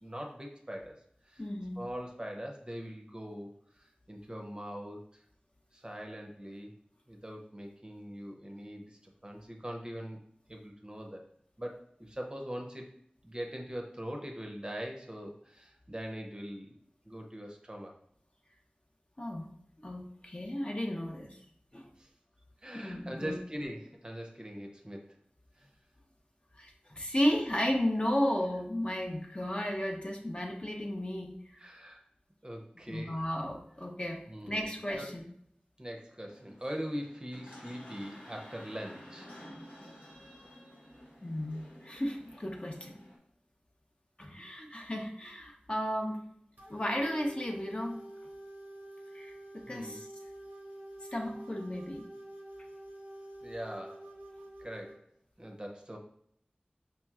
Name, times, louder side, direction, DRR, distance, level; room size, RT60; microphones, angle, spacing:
voice 1, 0.0-1.4 1.8-5.2 5.7-6.7 7.1-10.2 10.5-11.2 11.6-12.9 13.2-16.8 17.0-18.0 22.0-22.1 22.6-25.1 25.6-25.7 29.5-29.6 31.6-32.0 32.4-33.2 34.3-35.1 35.8-39.3 49.7-50.0 53.4-54.1 54.6-55.1 55.4-56.0, equal, 25° right, 1 dB, 0.6 m, -42 dB
voice 2, 1.4-1.8 19.2-19.5 19.8-21.4 21.7-21.9 22.8-23.4 26.6-31.4 32.9-34.2 34.5-35.3 41.2-43.0 44.2-46.2 46.7-48.0 49.1-50.1 51.1-52.0, equal, 35° left, 1 dB, 0.6 m, -34 dB
sound 1, 36.2-43.2, equal, 80° left, 1.2 m, -52 dB
sound 2, 46.6-55.0, right 1 dB, 80° right, 0.6 m, -48 dB
5.2 x 2.9 x 2.3 m, 0.69 s
wide cardioid pair, 45°, 3 cm